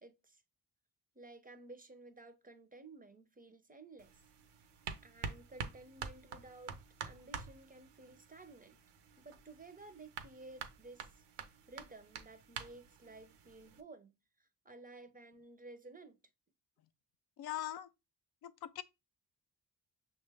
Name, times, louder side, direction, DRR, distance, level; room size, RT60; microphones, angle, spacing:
voice 1, 0.0-0.4 1.2-4.1 5.0-8.8 9.2-16.2, right 2 dB, 20° right, 0.5 m, -55 dB
sound 1, 4.0-13.8, right 6 dB, 85° right, 0.7 m, -48 dB
voice 2, 17.4-17.9 18.4-18.8, left 13 dB, 65° left, 0.5 m, -41 dB
6.2 x 2.2 x 3.3 m
cardioid pair, 115°, 41 cm